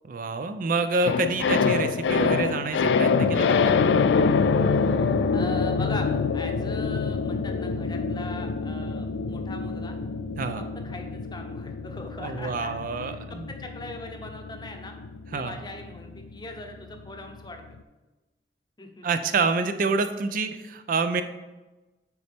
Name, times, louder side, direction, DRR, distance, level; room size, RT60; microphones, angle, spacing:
voice 1, 0.1-3.8 10.4-10.6 12.2-13.5 15.3-15.6 19.0-21.2, right 4 dB, 50° right, 9 dB, 0.4 m, -27 dB
sound 1, 1.1-17.4 17.7-17.8, left 5 dB, 85° left, 0.3 m, -26 dB
voice 2, 5.3-10.0 10.4-14.9 15.3-17.8 18.8-19.1, left 2 dB, 25° left, 4 dB, 0.7 m, -40 dB
9.0 x 4.1 x 3.4 m, 1.1 s
head